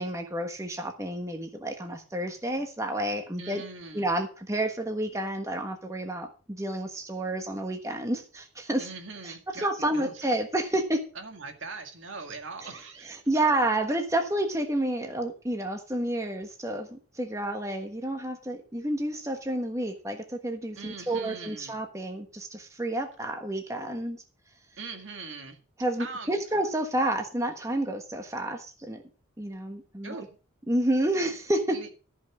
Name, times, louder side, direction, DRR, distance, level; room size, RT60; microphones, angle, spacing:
voice 1, 0.0-3.6 3.9-8.9 9.2-11.0 12.6-12.8 13.0-24.2 25.8-29.0 29.4-30.2 30.7-31.8, right 1 dB, 15° right, 4 dB, 1.3 m, -30 dB
voice 2, 3.4-4.1 8.8-9.7 9.9-10.2 11.2-13.2 20.8-21.7 24.8-25.6 26.0-26.4 30.0-30.4 31.7-31.9, right 4 dB, 65° right, 5 dB, 2.1 m, -41 dB
14.5 x 5.6 x 6.2 m, 0.36 s
head